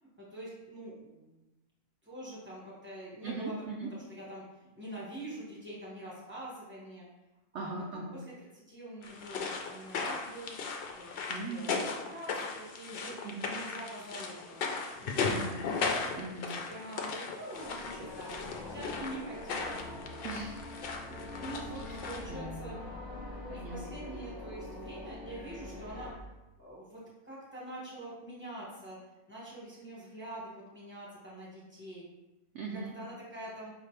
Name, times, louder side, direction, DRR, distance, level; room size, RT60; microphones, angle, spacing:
voice 1, 0.0-1.4 2.0-3.5 3.9-7.1 7.5-7.7 8.1-8.2 8.7-10.5 11.0-14.6 15.0-15.5 16.7-19.9 21.0-22.7 23.5-26.1 26.6-29.0 29.3-32.0 32.9-33.7, right 1 dB, 10° right, -6 dB, 1.2 m, -45 dB
voice 2, 3.2-3.9 7.5-8.2 11.3-11.8 13.2-13.5 15.1-15.6 16.1-16.6 20.2-20.6 21.9-22.0 22.3-22.8 23.5-23.8 32.5-32.9, right 3 dB, 65° right, -1 dB, 0.8 m, -40 dB
sound 1, 9.0-22.3, left 4 dB, 65° left, 0.5 m, -37 dB
sound 2, 17.5-26.1, left 2 dB, 20° left, 0.7 m, -44 dB
5.0 x 2.7 x 3.3 m, 1.0 s
omnidirectional pair, 1.5 m